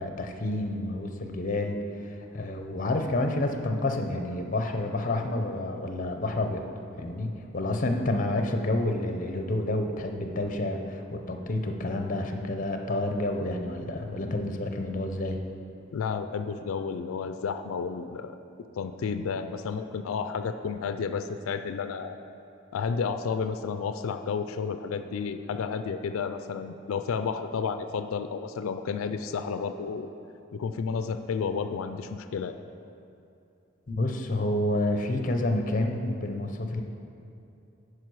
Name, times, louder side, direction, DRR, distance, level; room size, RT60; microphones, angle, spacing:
voice 1, 0.0-6.7 7.0-15.4 33.9-36.8, left 1 dB, 40° left, 5 dB, 0.6 m, -29 dB
voice 2, 15.9-18.4 18.8-22.2 22.7-30.1 30.5-32.6, left 5 dB, 90° left, 9 dB, 0.4 m, -31 dB
10.5 x 4.8 x 4.7 m, 2.7 s
head